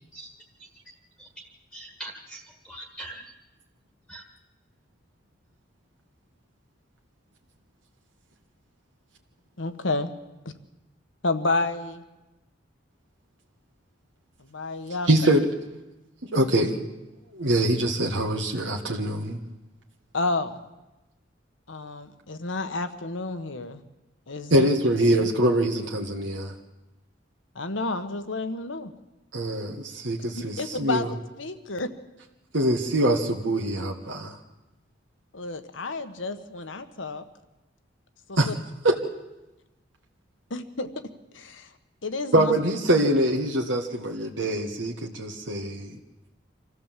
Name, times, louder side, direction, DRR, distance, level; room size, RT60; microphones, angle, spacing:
voice 1, 0.6-3.3 4.1-4.2, right 1 dB, ahead, 2 dB, 1.6 m, -43 dB
voice 2, 9.6-10.1 10.4-10.5 11.2-12.0 14.4-15.1 20.1-20.6 21.7-23.8 24.3-24.7 27.5-28.9 30.3-31.1 31.4-31.9 35.3-37.2 38.3-38.5 40.5-40.9 41.3-41.7 42.0-42.5, left 2 dB, 90° left, 9 dB, 1.4 m, -30 dB
voice 3, 15.1-15.4 16.3-16.7 17.3-19.4 24.5-26.5 29.3-31.1 32.5-34.4 38.4-38.5 38.8-39.0 42.3-45.9, right 1 dB, 85° right, 0 dB, 1.7 m, -24 dB
25.5 x 15.0 x 7.5 m, 1.0 s
head